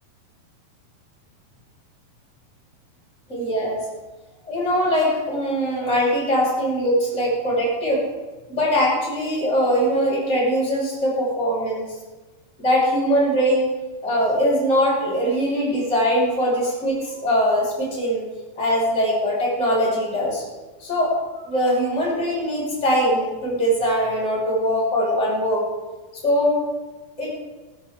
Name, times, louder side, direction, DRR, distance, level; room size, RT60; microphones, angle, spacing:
voice 1, 3.3-3.9 4.4-8.1 8.5-11.9 12.6-13.7 14.0-18.2 18.6-20.4 20.8-25.6 26.2-26.6 27.2-27.4, equal, 20° left, -7 dB, 6.2 m, -21 dB
18.0 x 15.5 x 3.8 m, 1.2 s
omnidirectional pair, 4.4 m